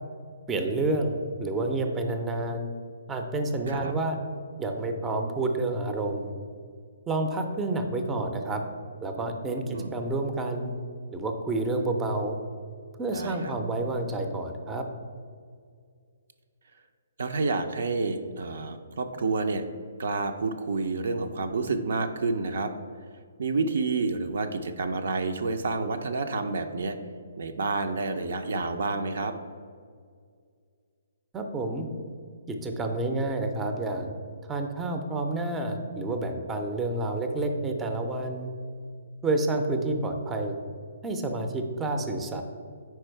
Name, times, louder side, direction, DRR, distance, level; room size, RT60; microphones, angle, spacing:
voice 1, 0.5-2.7 3.1-4.2 4.6-6.3 7.1-8.6 9.0-10.7 11.1-12.4 13.0-14.9 31.3-31.9 32.5-34.1 34.5-38.5 39.2-40.6 41.0-42.4, right 2 dB, 15° right, 5 dB, 0.5 m, -29 dB
voice 2, 9.6-9.9 13.1-13.5 17.2-19.6 20.0-22.7 23.4-27.0 27.4-29.3, right 3 dB, 65° right, 7 dB, 0.4 m, -29 dB
4.7 x 4.5 x 4.5 m, 2.1 s
hypercardioid pair, 135°, 0 cm